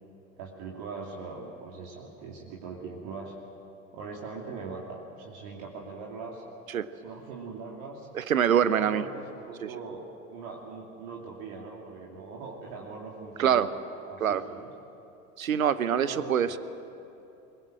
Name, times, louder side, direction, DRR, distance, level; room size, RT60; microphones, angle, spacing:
voice 1, 0.4-3.3 3.9-6.4 7.0-8.0 8.6-10.0 10.3-13.8 14.1-14.7 15.9-16.6, right 4 dB, 55° right, -2 dB, 3.1 m, -41 dB
voice 2, 8.1-9.0 9.6-9.7 13.4-13.7 14.2-14.4 15.4-16.6, right 8 dB, 85° right, 15 dB, 0.9 m, -24 dB
23.0 x 20.5 x 7.8 m, 2.9 s
hypercardioid pair, 80°, 41 cm